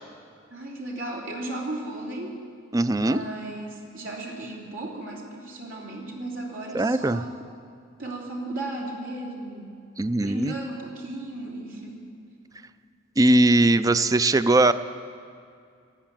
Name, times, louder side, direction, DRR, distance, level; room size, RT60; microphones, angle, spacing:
voice 1, 0.5-2.3 2.9-7.3 8.0-9.8 10.2-12.0, right 2 dB, 65° right, -2 dB, 3.0 m, -35 dB
voice 2, 2.7-3.2 6.7-7.2 10.0-10.5 13.2-14.7, right 2 dB, 15° right, 12 dB, 0.4 m, -20 dB
13.0 x 11.5 x 8.9 m, 2.3 s
head